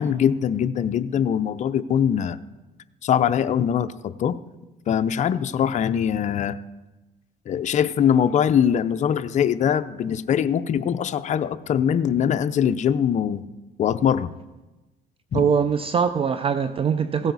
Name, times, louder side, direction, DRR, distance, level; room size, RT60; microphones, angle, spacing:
voice 1, 0.0-2.4 3.0-4.4 4.9-6.6 7.5-13.4 13.8-14.3 15.3-15.4, left 8 dB, 45° left, 0.6 m, -22 dB
voice 2, 15.3-17.3, right 6 dB, 35° right, 0.4 m, -22 dB
16.0 x 9.0 x 4.1 m
cardioid pair, 110°, 17 cm